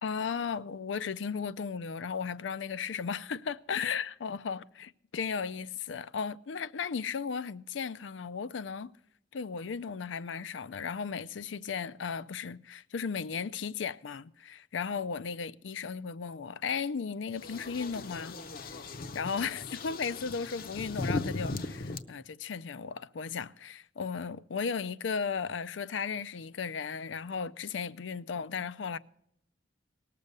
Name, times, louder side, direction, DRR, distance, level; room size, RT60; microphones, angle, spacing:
voice 1, 0.0-8.9 9.3-18.8 19.1-29.0, left 6 dB, 85° left, 0.5 m, -35 dB
sound 1, 17.3-22.0, left 2 dB, 50° left, 0.7 m, -38 dB
19.0 x 6.8 x 6.7 m
head